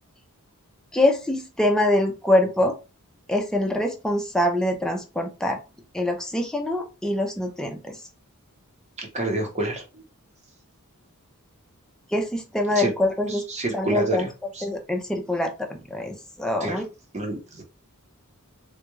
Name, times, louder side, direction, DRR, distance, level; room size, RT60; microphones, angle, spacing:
voice 1, 0.9-2.7 3.3-5.6 5.9-7.9 12.1-13.4 13.7-14.3 14.6-16.8, left 1 dB, 5° left, 2 dB, 0.6 m, -24 dB
voice 2, 9.0-10.0 12.7-12.9 13.3-14.7 16.6-16.8 17.1-17.6, right 2 dB, 30° right, 2 dB, 0.9 m, -29 dB
3.4 x 2.4 x 3.1 m, 0.30 s
head